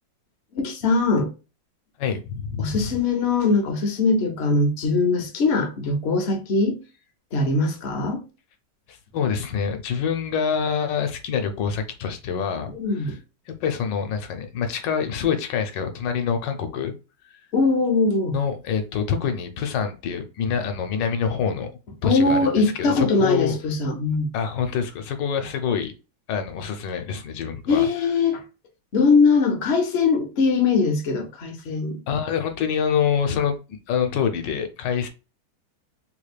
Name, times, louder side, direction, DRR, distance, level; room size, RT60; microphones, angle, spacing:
voice 1, 0.5-1.3 2.6-6.8 7.3-8.2 12.7-13.2 17.5-18.4 22.0-24.3 27.7-28.4 28.9-32.0, left 4 dB, 45° left, 1.0 m, -21 dB
voice 2, 2.0-2.9 8.9-12.7 13.0-13.2 13.5-16.9 18.3-21.7 22.0-23.5 24.3-25.9 26.3-27.9 32.1-33.6 33.9-35.1, left 7 dB, 85° left, 1.3 m, -26 dB
3.5 x 3.2 x 2.3 m
omnidirectional pair, 1.9 m